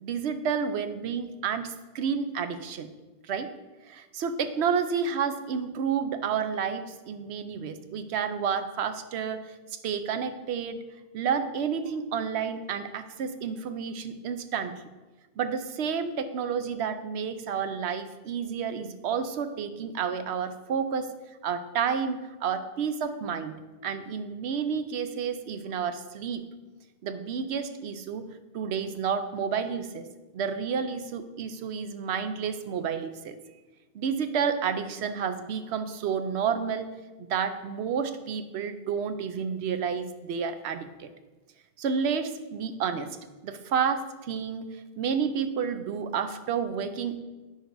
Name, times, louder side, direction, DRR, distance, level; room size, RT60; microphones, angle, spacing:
voice 1, 0.0-2.9 3.3-3.5 3.9-9.6 9.8-10.8 11.1-14.7 15.4-21.1 21.4-26.5 27.0-28.3 28.5-30.1 30.3-33.4 33.9-36.9 37.2-41.1 41.8-43.2 43.4-44.7 45.0-47.2, right 6 dB, 80° right, 10 dB, 0.9 m, -30 dB
9.7 x 6.4 x 2.6 m, 1.2 s
omnidirectional pair, 1.1 m